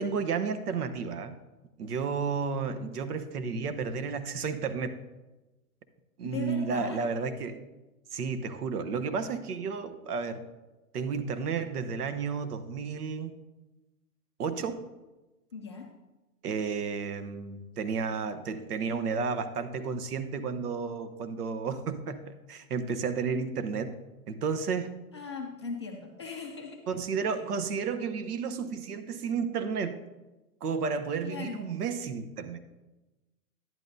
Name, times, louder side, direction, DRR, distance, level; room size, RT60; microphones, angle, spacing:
voice 1, 0.0-1.4 1.8-4.9 6.2-7.6 8.1-10.4 10.9-13.4 14.4-14.8 16.4-24.0 24.3-24.9 26.9-30.0 30.6-32.6, right 5 dB, 80° right, 10 dB, 1.0 m, -32 dB
voice 2, 6.2-7.1 15.5-15.9 25.1-26.8 27.3-27.4 31.2-31.6, left 5 dB, 20° left, -1 dB, 0.4 m, -39 dB
11.0 x 10.5 x 2.7 m, 1.1 s
hypercardioid pair, 160°, 45 cm